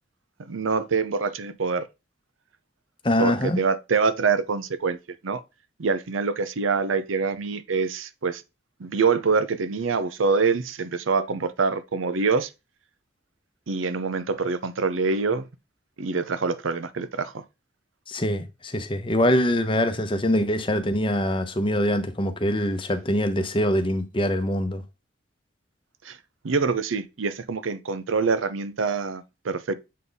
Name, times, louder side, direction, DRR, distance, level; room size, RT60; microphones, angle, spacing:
voice 1, 0.5-1.9 3.2-5.0 5.2-5.4 5.8-8.4 8.8-12.5 13.7-15.5 16.0-17.4 26.0-26.2 26.4-29.7, right 4 dB, 85° right, 0.6 m, -25 dB
voice 2, 3.0-3.6 18.1-24.8, left 1 dB, 25° left, 0.8 m, -24 dB
7.5 x 3.6 x 3.9 m
head